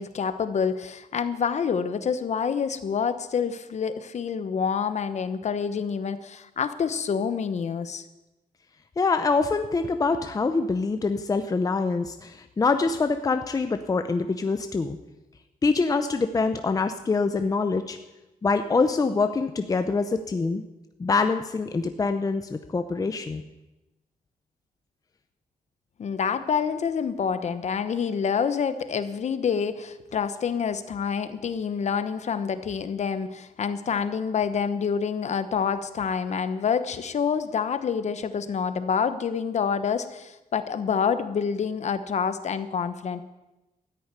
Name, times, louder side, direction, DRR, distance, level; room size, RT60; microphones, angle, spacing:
voice 1, 0.0-8.0 26.0-43.2, left 6 dB, 50° left, 11 dB, 1.1 m, -27 dB
voice 2, 9.0-15.0 15.6-18.0 18.4-20.6 21.0-23.4, left 4 dB, 25° left, 8 dB, 0.7 m, -25 dB
14.0 x 10.0 x 9.6 m, 1.0 s
wide cardioid pair, 170°, 15 cm